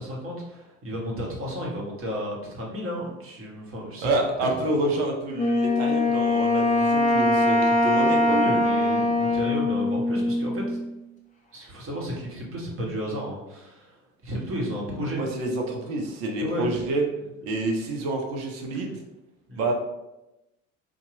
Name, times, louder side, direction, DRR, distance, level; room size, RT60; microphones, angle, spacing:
voice 1, 0.0-4.1 4.8-5.0 8.1-10.8 11.5-14.0 14.2-15.2 16.4-16.7 19.5-19.6, equal, 30° right, -3 dB, 1.2 m, -33 dB
voice 2, 4.0-8.4 15.2-17.0 17.4-19.0 19.5-19.7, right 2 dB, 60° right, 1 dB, 0.8 m, -28 dB
Wind instrument woodwind instrument, 5.4-10.8, left 2 dB, 20° left, 0.6 m, -22 dB
2.9 x 2.3 x 3.7 m, 0.96 s
figure-of-eight pair, 65°, 40 cm